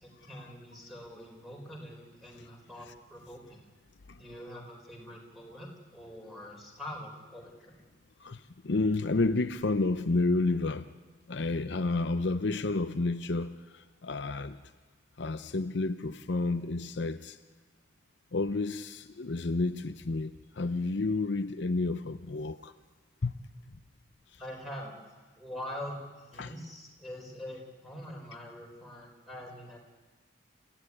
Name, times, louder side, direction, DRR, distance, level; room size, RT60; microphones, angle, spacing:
voice 1, 0.0-3.6 4.1-7.8 24.4-25.0 25.4-29.8, left 1 dB, ahead, 4.3 m, -44 dB
voice 2, 8.2-10.9 11.3-14.6 15.2-17.4 18.3-22.7 23.2-23.4 26.4-26.5, left 3 dB, 65° left, 0.7 m, -30 dB
28.5 x 15.0 x 9.8 m
head